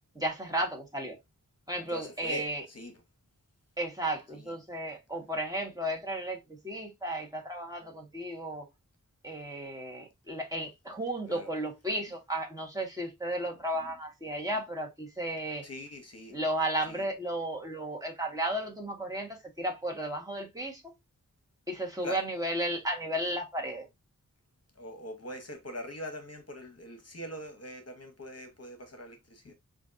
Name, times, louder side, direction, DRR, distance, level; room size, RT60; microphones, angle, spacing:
voice 1, 0.1-1.2 1.7-2.6 3.8-6.4 6.6-8.7 9.2-15.6 16.3-20.8 21.7-23.9, right 1 dB, 10° right, 1.3 m, -34 dB
voice 2, 1.9-3.0 4.3-4.5 11.3-11.5 13.8-13.9 15.6-16.4 16.9-17.0 22.0-22.2 24.8-29.5, left 1 dB, 50° left, 0.9 m, -42 dB
5.0 x 2.6 x 2.5 m
wide cardioid pair, 65°, 33 cm